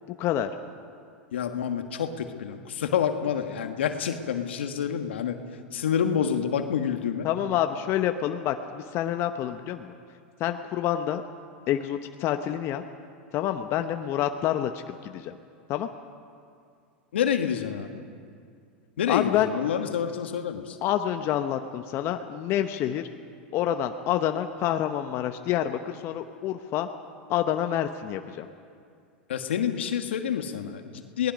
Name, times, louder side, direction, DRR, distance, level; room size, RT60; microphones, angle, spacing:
voice 1, 0.2-0.5 7.2-9.9 10.4-11.2 11.7-12.8 13.3-15.4 15.7-15.9 19.1-19.5 20.8-23.1 23.5-26.9 27.3-28.5, left 11 dB, 45° left, 7 dB, 0.9 m, -27 dB
voice 2, 1.3-5.4 5.7-7.3 17.1-18.0 19.0-20.8 29.3-31.3, left 8 dB, 80° left, 7 dB, 1.5 m, -28 dB
27.0 x 19.0 x 5.3 m, 2.3 s
hypercardioid pair, 95°, 6 cm